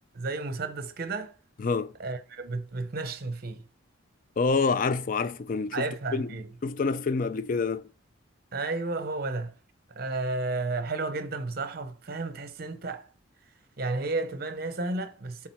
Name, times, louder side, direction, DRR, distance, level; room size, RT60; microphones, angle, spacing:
voice 1, 0.1-1.3 2.0-3.6 5.7-6.5 8.5-9.5 9.9-13.1 13.8-15.5, right 3 dB, 50° right, 0.7 m, -32 dB
voice 2, 1.6-1.9 4.4-6.3 6.6-7.9, left 4 dB, 40° left, 0.4 m, -27 dB
8.6 x 3.6 x 4.5 m
head